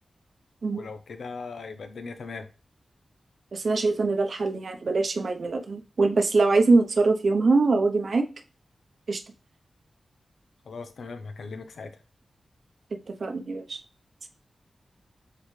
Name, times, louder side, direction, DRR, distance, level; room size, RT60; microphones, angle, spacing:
voice 1, 0.7-2.5 10.6-12.0, left 4 dB, 90° left, 8 dB, 0.9 m, -39 dB
voice 2, 3.5-8.2 9.1-9.2 13.1-13.8, right 3 dB, 55° right, 6 dB, 0.8 m, -23 dB
7.6 x 4.0 x 3.3 m, 0.34 s
wide cardioid pair, 140°, 0 cm